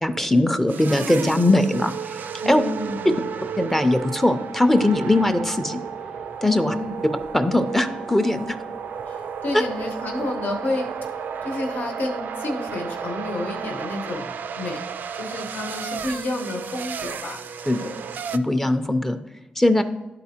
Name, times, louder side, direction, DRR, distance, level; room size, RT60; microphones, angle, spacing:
voice 1, 0.0-2.6 3.6-5.8 6.4-6.8 7.3-8.6 17.7-17.8 18.3-19.2 19.6-19.8, left 1 dB, 10° left, 8 dB, 0.4 m, -20 dB
sound 1, 0.7-18.4, right 7 dB, 80° right, 0.3 m, -33 dB
voice 2, 2.4-3.3 6.6-7.2 9.0-11.1 11.4-14.8 15.1-17.4 17.8-18.0, left 2 dB, 75° left, 2 dB, 0.9 m, -30 dB
sound 2, 4.0-14.0, right 6 dB, 40° left, 0.9 m, -40 dB
11.5 x 4.3 x 2.8 m, 1.0 s
wide cardioid pair, 115°, 3 cm